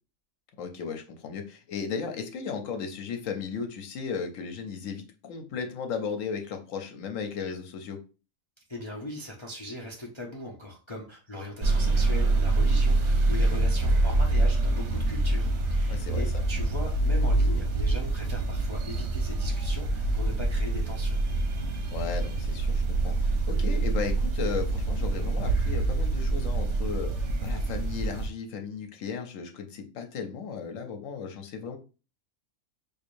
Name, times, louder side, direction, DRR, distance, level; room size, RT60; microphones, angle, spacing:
voice 1, 0.6-8.0 15.9-16.4 21.9-31.8, left 6 dB, 75° left, 5 dB, 1.0 m, -35 dB
voice 2, 8.7-21.2, left 1 dB, 50° left, -2 dB, 0.3 m, -39 dB
sound 1, 11.6-28.3, right 2 dB, 60° right, 0.9 m, -26 dB
4.6 x 2.5 x 2.5 m, 0.33 s
omnidirectional pair, 1.4 m